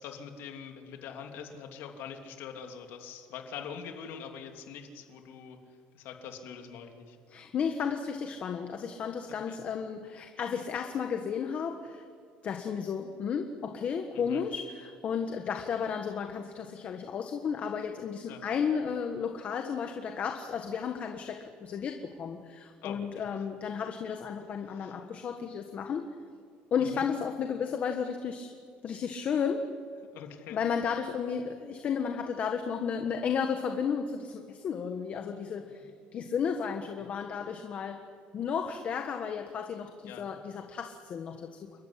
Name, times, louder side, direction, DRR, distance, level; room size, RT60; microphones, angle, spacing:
voice 1, 0.0-5.6 5.9-7.2 9.3-9.6 14.1-14.4 18.3-18.4 22.8-23.4 24.7-25.0 26.8-27.0 30.1-30.6 35.7-35.9 40.0-40.4, left 7 dB, 65° left, 4 dB, 3.0 m, -44 dB
voice 2, 7.3-12.0 12.4-26.0 26.7-28.5 28.8-29.6 30.5-35.9 36.1-38.0 38.3-41.8, left 6 dB, 35° left, 5 dB, 1.5 m, -33 dB
29.0 x 14.5 x 10.0 m, 2.2 s
cardioid pair, 155°, 4 cm